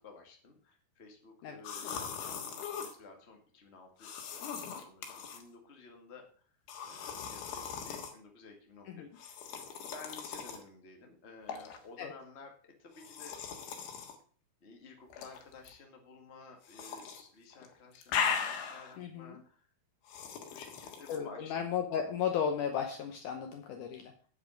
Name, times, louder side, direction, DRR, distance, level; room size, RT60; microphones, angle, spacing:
voice 1, 0.0-6.5 6.8-12.5 12.8-13.4 13.7-13.8 14.6-19.7 20.3-21.7, left 4 dB, 25° left, 2 dB, 1.6 m, -54 dB
sound 1, 1.6-3.0 4.0-5.4 6.7-8.1 9.2-10.6 11.5-11.8 13.0-14.2 15.1-15.7 16.7-17.2 17.5-19.0 20.1-21.2, left 7 dB, 85° left, 3.5 m, -39 dB
voice 2, 19.0-19.4 21.1-24.1, left 7 dB, 70° left, 5 dB, 2.1 m, -35 dB
8.7 x 8.4 x 6.4 m, 0.43 s
omnidirectional pair, 4.4 m